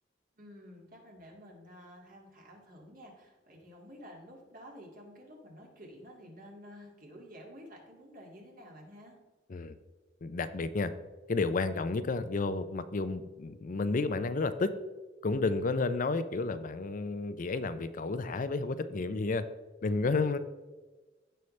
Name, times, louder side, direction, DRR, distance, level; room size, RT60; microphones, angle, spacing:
voice 1, 0.4-9.2, equal, 50° right, 0 dB, 2.2 m, -51 dB
voice 2, 10.2-10.9 11.3-14.7 15.2-19.4 19.8-20.4, left 3 dB, 45° left, 11 dB, 0.5 m, -31 dB
15.5 x 5.6 x 3.2 m, 1.2 s
head